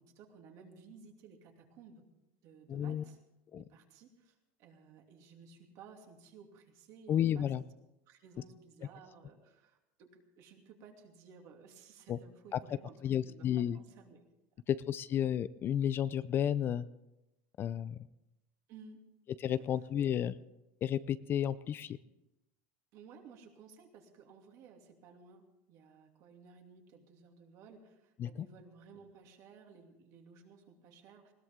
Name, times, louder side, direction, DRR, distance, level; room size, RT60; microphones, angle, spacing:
voice 1, 0.0-2.0 2.4-3.2 3.5-7.7 8.1-14.2 18.7-19.1 19.4-19.7 22.9-31.3, right 5 dB, 50° right, 2 dB, 2.8 m, -56 dB
voice 2, 2.7-3.0 3.5-3.6 7.1-7.6 12.1-12.2 12.5-12.6 13.0-13.8 14.7-16.8 17.6-18.0 19.4-20.4 20.8-22.0 28.2-28.3, left 10 dB, 30° left, 15 dB, 0.4 m, -32 dB
20.0 x 17.5 x 3.7 m, 0.92 s
supercardioid pair, 135°, 7 cm